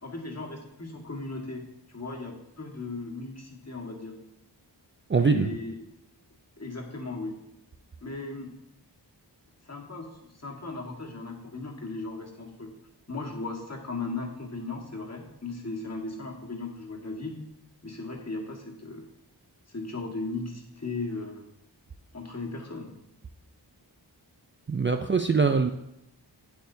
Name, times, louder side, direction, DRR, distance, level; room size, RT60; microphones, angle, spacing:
voice 1, 0.0-4.2 5.2-5.9 6.6-7.4 8.0-8.5 9.6-12.7 13.1-17.4 17.8-19.1 19.7-21.4 22.1-22.9, left 3 dB, 35° left, -1 dB, 1.6 m, -37 dB
voice 2, 5.1-5.5 24.7-25.7, right 5 dB, 30° right, 6 dB, 0.4 m, -23 dB
8.5 x 8.0 x 2.7 m, 0.82 s
wide cardioid pair, 65°, 43 cm